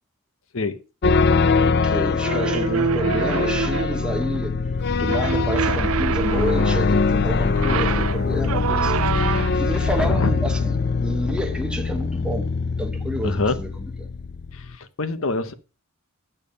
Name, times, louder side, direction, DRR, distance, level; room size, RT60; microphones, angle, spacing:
sound 1, 1.0-14.7, left 4 dB, 50° left, 0.5 m, -23 dB
voice 1, 1.6-4.6 4.9-13.7 14.0-14.1, equal, 5° right, 1.2 m, -30 dB
sound 2, 2.2-4.1 5.1-6.9 7.5-9.7, right 6 dB, 80° right, 0.6 m, -26 dB
sound 3, 4.8-10.1, right 1 dB, 50° right, 1.7 m, -36 dB
voice 2, 10.0-10.3 13.2-13.6 14.5-15.5, left 3 dB, 65° left, 1.0 m, -25 dB
9.0 x 7.1 x 5.3 m
head